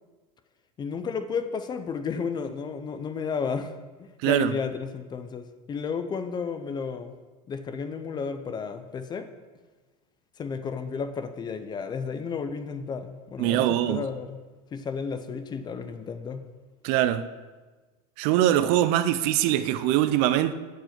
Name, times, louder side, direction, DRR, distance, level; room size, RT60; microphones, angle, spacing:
voice 1, 0.8-3.7 4.0-7.1 7.5-9.3 10.4-14.4 14.7-16.4, left 5 dB, 25° left, 0.4 m, -32 dB
voice 2, 4.2-4.6 13.4-14.0 16.8-17.3 18.2-20.5, right 13 dB, 55° right, 0.4 m, -22 dB
7.8 x 4.7 x 4.4 m
supercardioid pair, 120°, 19 cm